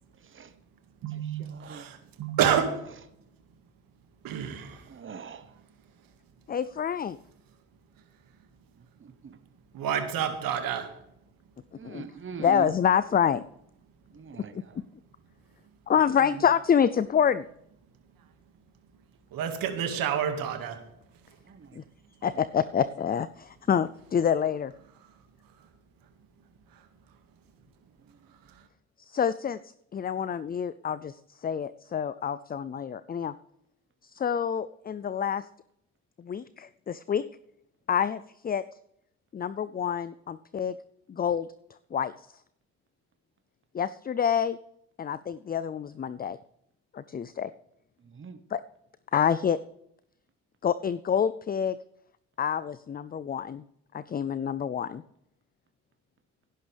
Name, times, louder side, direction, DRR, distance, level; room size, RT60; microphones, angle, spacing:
voice 1, 1.0-2.8 4.2-4.8 9.7-10.9 19.3-20.8, right 8 dB, 75° right, 6 dB, 2.0 m, -29 dB
voice 2, 1.5-1.8 4.9-5.5 9.0-9.4 11.8-12.7 14.1-14.5 21.5-21.8 48.1-48.4, right 6 dB, 35° right, 11 dB, 1.1 m, -41 dB
voice 3, 6.5-7.2 11.8-12.0 12.4-13.4 14.5-14.6 15.9-17.5 21.8-21.9 22.2-24.7 29.0-33.3 34.0-35.5 36.2-37.2 37.9-38.6 39.3-40.7 41.1-41.5 41.9-42.1 43.7-44.6 45.0-46.4 46.9-47.5 48.5-48.6 49.1-49.6 50.6-51.8 52.4-53.6 53.9-55.0, left 8 dB, 25° left, 15 dB, 0.4 m, -27 dB
17.0 x 11.0 x 3.5 m, 0.76 s
hypercardioid pair, 50°, 35 cm